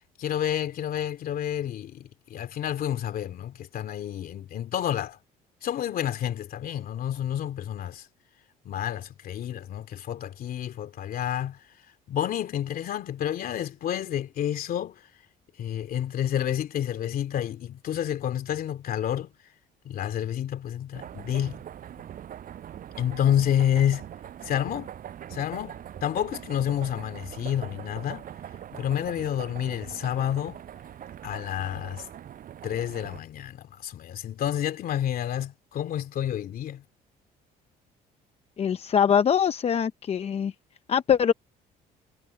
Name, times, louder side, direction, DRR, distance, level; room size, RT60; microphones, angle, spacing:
voice 1, 0.2-5.2 5.6-8.0 8.6-11.6 12.1-15.0 15.6-19.3 19.8-21.6 23.0-24.1 24.4-24.9 25.3-28.2 28.7-30.6 31.2-32.1 32.6-36.8, left 10 dB, 60° left, 2.8 m, -29 dB
sound 1, 20.9-33.2, right 10 dB, 55° right, 6.5 m, -42 dB
voice 2, 38.6-40.5 40.9-41.3, left 8 dB, 35° left, 0.6 m, -23 dB
cardioid pair, 110°, 17 cm